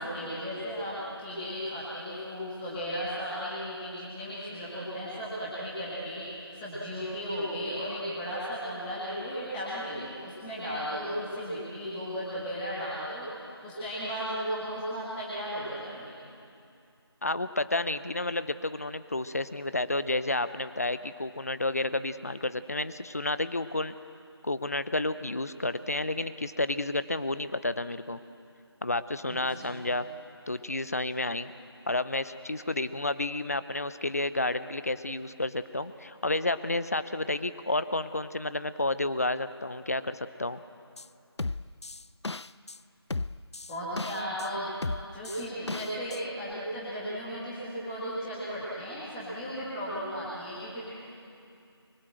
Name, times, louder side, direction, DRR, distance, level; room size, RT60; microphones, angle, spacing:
voice 1, 0.0-13.3 13.6-16.1 29.2-29.8 43.7-44.7 45.1-50.9, equal, 5° left, -10 dB, 1.7 m, -35 dB
voice 2, 17.2-23.9 24.4-28.2 28.8-30.1 30.5-31.5 31.9-40.6, left 2 dB, 35° left, 13 dB, 0.8 m, -31 dB
sound 1, 41.0-41.1 41.4-42.8 43.1-44.5 44.8-46.2 46.5-46.6, left 3 dB, 85° left, 0.6 m, -35 dB
25.0 x 23.5 x 7.7 m, 2.5 s
figure-of-eight pair, 175°, 14 cm